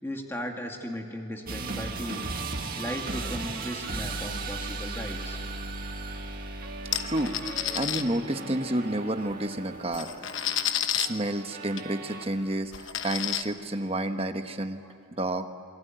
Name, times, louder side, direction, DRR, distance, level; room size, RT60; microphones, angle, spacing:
voice 1, 0.0-2.3 2.7-5.4, equal, 10° left, 2 dB, 2.3 m, -36 dB
sound 1, 1.5-12.3, right 3 dB, 45° right, 2.3 m, -37 dB
sound 2, 6.9-8.0 9.3-9.4 9.8-11.1 11.8-11.9 12.2-12.3 12.7-13.4, left 10 dB, 60° left, 1.1 m, -30 dB
voice 2, 7.0-10.1 10.9-14.8 15.2-15.5, right 1 dB, 30° right, 7 dB, 1.2 m, -30 dB
27.0 x 22.5 x 9.3 m, 2.9 s
head